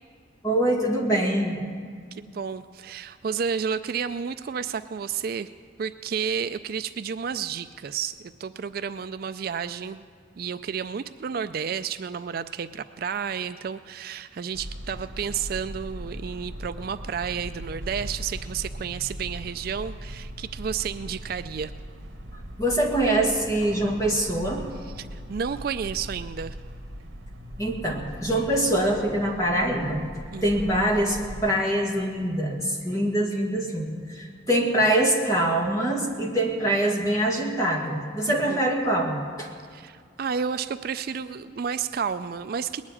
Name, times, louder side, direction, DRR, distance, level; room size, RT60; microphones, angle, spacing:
voice 1, 0.4-1.6 22.6-24.6 27.6-30.1 30.4-39.5, right 1 dB, 15° left, -1 dB, 1.9 m, -24 dB
voice 2, 2.1-5.5 5.8-10.0 10.4-21.7 24.8-26.6 30.3-30.8 38.4-38.7 39.7-42.8, right 7 dB, 50° right, 11 dB, 0.3 m, -31 dB
sound 1, 14.5-31.5, equal, 80° right, 1.4 m, -39 dB
20.0 x 7.3 x 9.7 m, 2.1 s
head